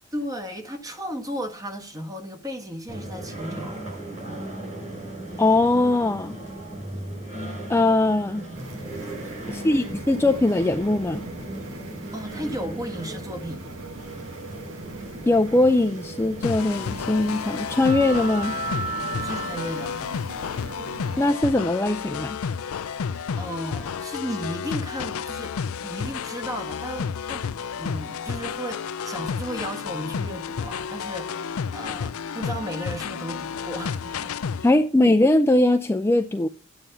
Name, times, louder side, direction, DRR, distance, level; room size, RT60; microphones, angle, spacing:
voice 1, 0.1-3.8 9.4-10.2 12.1-13.7 19.2-20.0 23.4-25.6 25.8-27.5 27.8-34.4, equal, 15° right, 1.2 m, -34 dB
sound 1, 2.9-20.0, right 2 dB, 35° right, 5.6 m, -36 dB
voice 2, 5.4-6.4 7.7-8.4 9.5-11.2 15.2-18.6 21.2-22.4 34.6-36.5, left 2 dB, 10° left, 0.4 m, -21 dB
sound 2, 8.5-21.3, right 2 dB, 90° right, 1.4 m, -40 dB
sound 3, 16.4-34.7, left 6 dB, 85° left, 0.4 m, -31 dB
9.0 x 8.8 x 5.7 m
head